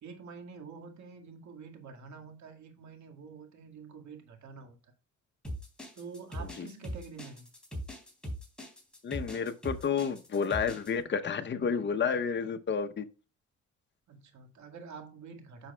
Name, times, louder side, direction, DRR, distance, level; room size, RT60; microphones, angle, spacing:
voice 1, 0.0-4.8 6.0-7.5 14.1-15.7, right 5 dB, 70° right, 2.0 m, -47 dB
sound 1, 5.4-10.9, equal, 5° left, 3.4 m, -40 dB
voice 2, 9.0-13.0, left 6 dB, 35° left, 0.9 m, -30 dB
10.0 x 6.1 x 2.3 m
cardioid pair, 90°, 30 cm